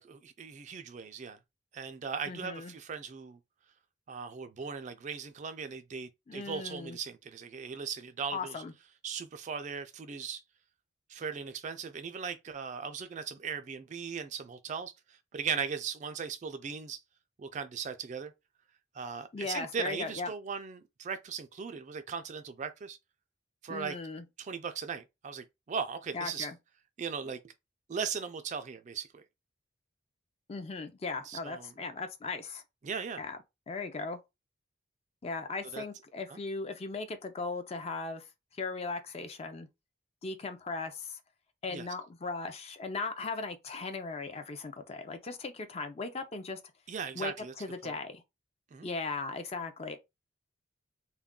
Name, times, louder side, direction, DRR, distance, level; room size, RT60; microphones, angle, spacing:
voice 1, 0.0-1.4 1.7-3.4 4.1-8.6 9.0-10.4 11.1-17.0 17.4-18.3 18.9-23.0 23.6-24.0 24.4-26.5 27.0-27.5 27.9-29.2 31.3-31.7 32.8-33.2 35.7-35.8 36.3-36.4 41.7-41.9 46.9-47.5 47.8-47.9 48.7-48.9, right 6 dB, 40° right, 0.3 m, -38 dB
voice 2, 2.3-2.7 6.3-7.0 8.3-8.7 19.3-20.3 23.7-24.2 26.1-26.6 30.5-32.6 33.2-33.4 33.7-34.2 35.2-38.3 38.5-39.7 40.2-41.2 41.6-46.6 47.1-48.2 48.8-50.0, left 3 dB, 30° left, 0.4 m, -38 dB
2.3 x 2.2 x 3.5 m
head